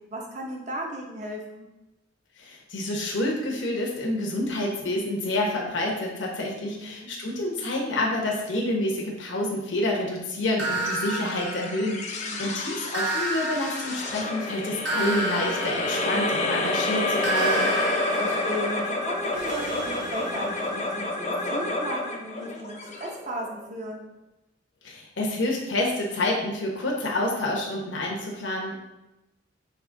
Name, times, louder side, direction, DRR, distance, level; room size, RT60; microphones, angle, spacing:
voice 1, 0.1-1.7 6.6-7.1 12.2-12.5 18.1-24.0, right 1 dB, 40° right, 0 dB, 0.8 m, -36 dB
voice 2, 2.4-17.7 24.8-28.7, left 1 dB, 75° left, -2 dB, 0.9 m, -28 dB
sound 1, 10.6-12.3 12.9-16.6 17.2-21.0, right 2 dB, 65° right, 1.0 m, -31 dB
sound 2, 11.1-23.7, left 2 dB, 35° left, 0.5 m, -29 dB
4.8 x 2.9 x 3.7 m, 0.97 s
head